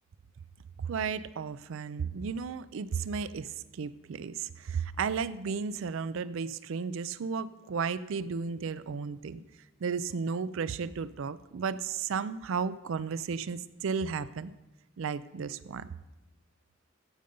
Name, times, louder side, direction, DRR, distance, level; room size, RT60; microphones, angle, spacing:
voice 1, 0.8-9.4 9.8-14.5 15.0-15.9, right 5 dB, 70° right, 16 dB, 0.4 m, -34 dB
14.5 x 5.2 x 5.4 m, 0.99 s
head